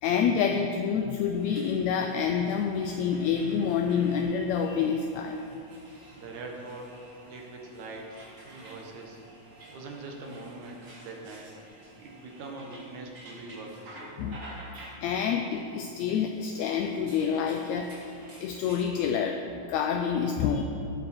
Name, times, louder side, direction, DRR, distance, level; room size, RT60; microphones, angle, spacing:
voice 1, 0.0-5.4 14.2-14.4 15.0-20.6, left 7 dB, 80° left, 4 dB, 1.7 m, -28 dB
sound 1, 1.3-18.9, right 1 dB, 45° right, 3.5 m, -51 dB
voice 2, 6.2-6.9 7.3-9.2 9.7-11.5 12.0-14.0, right 3 dB, 70° right, 1 dB, 2.7 m, -42 dB
17.5 x 8.7 x 4.4 m, 2.7 s
omnidirectional pair, 3.7 m